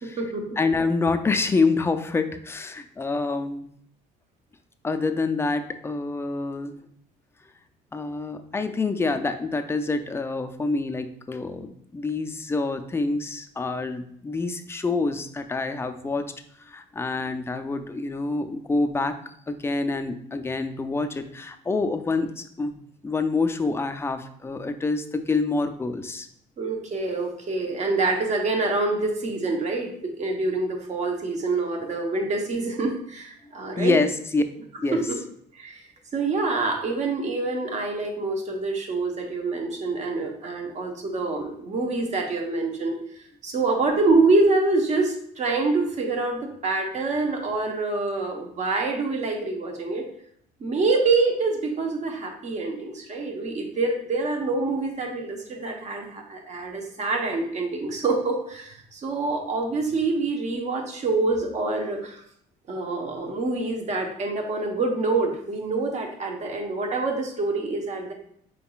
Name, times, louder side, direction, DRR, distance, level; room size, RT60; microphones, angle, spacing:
voice 1, 0.0-0.6 26.6-34.0 34.9-35.0 35.5-35.8 36.1-50.1 50.6-62.2 62.7-68.1, right 3 dB, 45° right, 2 dB, 0.9 m, -26 dB
voice 2, 0.6-3.7 4.8-6.7 7.9-16.3 16.7-19.2 19.5-22.8 23.0-26.3 33.8-34.4 34.8-35.0, left 3 dB, 15° left, 8 dB, 0.3 m, -26 dB
4.7 x 3.6 x 2.3 m, 0.67 s
cardioid pair, 110°, 17 cm